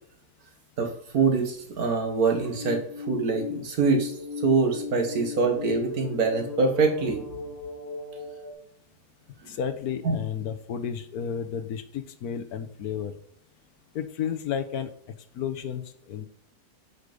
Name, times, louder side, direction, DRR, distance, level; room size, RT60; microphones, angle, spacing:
voice 1, 0.8-7.3 9.4-9.5 10.0-10.2, right 4 dB, 65° right, 4 dB, 1.9 m, -25 dB
sound 1, 2.4-8.5, left 5 dB, 15° right, 2.8 m, -37 dB
voice 2, 9.5-13.1 13.9-14.9 15.3-16.3, left 8 dB, 70° left, 9 dB, 1.2 m, -32 dB
8.2 x 5.0 x 5.3 m, 0.66 s
omnidirectional pair, 1.7 m